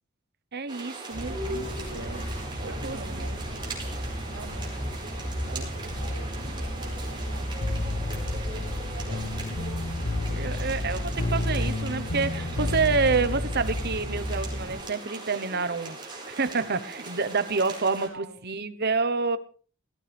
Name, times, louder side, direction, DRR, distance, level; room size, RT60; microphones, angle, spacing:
voice 1, 0.5-1.7 1.9-2.2 2.6-3.2 5.5-5.7 9.1-9.2 10.3-19.4, right 4 dB, 50° right, 12 dB, 1.1 m, -28 dB
sound 1, 0.7-18.1, right 2 dB, 25° right, 4.8 m, -40 dB
sound 2, 1.1-14.8, equal, 35° left, 7.6 m, -35 dB
voice 2, 2.5-3.9 4.3-5.0 5.4-7.7 8.5-9.4 17.9-18.4, right 3 dB, 75° right, 2 dB, 3.8 m, -47 dB
sound 3, 7.6-14.0, left 2 dB, 80° left, 1.2 m, -31 dB
17.5 x 15.0 x 3.5 m, 0.39 s
head